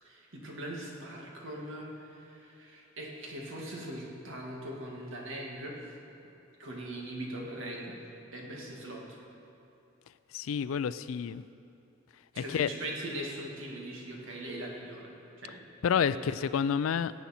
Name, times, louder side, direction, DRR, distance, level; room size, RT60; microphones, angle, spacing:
voice 1, 0.0-5.8 6.6-8.0 8.3-9.2 12.3-15.1 15.4-15.7 15.9-16.3, right 1 dB, 70° right, -2 dB, 2.0 m, -41 dB
voice 2, 10.3-11.4 12.4-12.7 15.8-17.1, left 7 dB, 85° left, 15 dB, 0.4 m, -29 dB
17.0 x 8.3 x 4.3 m, 2.8 s
head